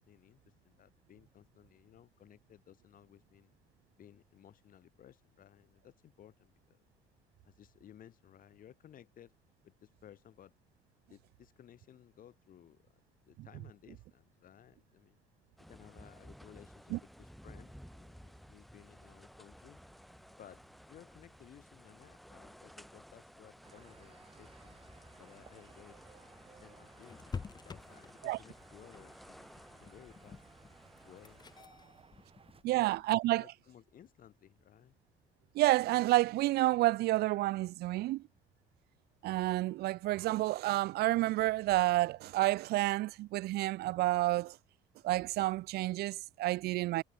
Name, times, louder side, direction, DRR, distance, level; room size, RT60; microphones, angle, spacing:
voice 1, 0.0-3.5 4.0-6.8 7.4-9.3 9.6-10.5 11.1-12.8 13.3-15.2 15.6-19.8 20.4-24.8 25.2-27.2 27.6-30.5 31.0-31.9 32.7-32.8 33.3-34.9, left 10 dB, 55° left, 3.7 m, -58 dB
sound 1, 15.6-31.6, equal, ahead, 1.4 m, -56 dB
sound 2, 23.6-32.6, right 6 dB, 35° right, 3.2 m, -61 dB
sound 3, 27.0-33.2, left 5 dB, 25° left, 0.9 m, -49 dB
voice 2, 32.6-33.5 35.5-38.2 39.2-44.6 45.0-47.0, right 17 dB, 70° right, 0.4 m, -30 dB
cardioid pair, 110°, 17 cm